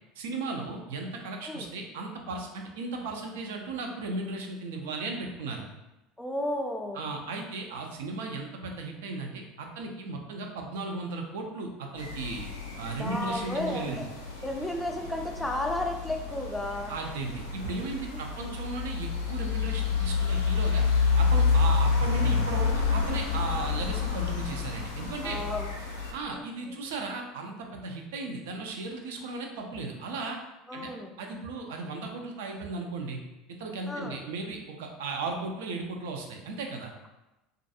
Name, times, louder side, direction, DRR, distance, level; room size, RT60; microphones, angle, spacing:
voice 1, 0.2-5.6 6.9-12.5 12.8-14.0 16.9-20.8 21.2-25.4 26.1-30.4 30.7-30.9 31.2-33.2 33.5-36.9, right 3 dB, 65° right, 2 dB, 0.4 m, -36 dB
voice 2, 6.2-7.0 13.0-14.1 14.4-16.9 18.1-18.6 25.2-25.7 26.3-26.8 30.7-31.2 33.9-34.2, left 1 dB, 10° left, 2 dB, 0.4 m, -33 dB
sound 1, 12.0-26.1, left 5 dB, 80° left, 0.4 m, -29 dB
2.4 x 2.2 x 2.7 m, 0.99 s
figure-of-eight pair, 70°, 0 cm